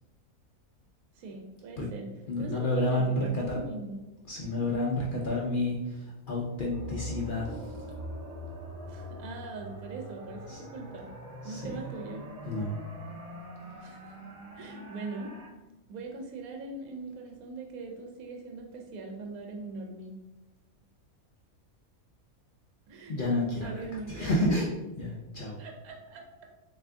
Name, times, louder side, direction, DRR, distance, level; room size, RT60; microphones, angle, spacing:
voice 1, 1.2-2.1 2.4-4.0 8.8-11.1 11.4-12.3 13.8-14.2 14.6-15.3 15.9-20.2 22.9-23.2 23.6-24.4 25.6-26.2, right 3 dB, 80° right, 2 dB, 1.1 m, -41 dB
voice 2, 2.3-3.6 4.2-7.8 10.5-10.6 11.4-11.8 12.4-12.8 23.1-24.7 25.0-25.6, left 1 dB, 65° left, -3 dB, 0.5 m, -30 dB
sound 1, 6.7-15.5, equal, 35° right, 0.6 m, -43 dB
3.4 x 2.7 x 3.5 m, 1.0 s
omnidirectional pair, 1.5 m